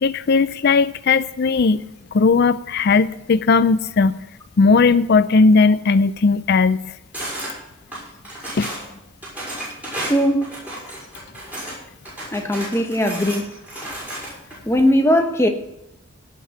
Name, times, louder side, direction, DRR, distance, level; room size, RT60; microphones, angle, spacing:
voice 1, 0.0-1.8 2.1-4.2 4.6-6.8 8.6-8.7, left 4 dB, 50° left, 0.4 m, -17 dB
sound 1, 7.1-7.5 7.9-8.8 9.2-11.8 12.0-14.5, right 1 dB, 10° right, 6.3 m, -32 dB
voice 2, 10.0-10.5 12.3-13.5 14.7-15.5, equal, 15° left, 1.2 m, -19 dB
17.0 x 6.0 x 7.2 m
head